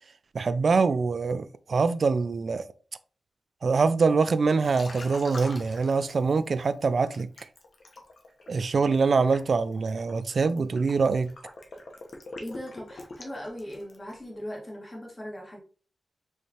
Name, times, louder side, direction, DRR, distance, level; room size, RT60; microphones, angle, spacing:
voice 1, 0.3-2.7 3.6-7.3 8.5-11.3, right 4 dB, 55° right, 0.4 m, -24 dB
Liquid, 4.6-6.6 7.1-14.1, left 2 dB, 60° left, 1.0 m, -44 dB
voice 2, 12.4-15.6, equal, 20° left, 1.8 m, -39 dB
4.8 x 3.2 x 2.8 m
wide cardioid pair, 95°, 0 cm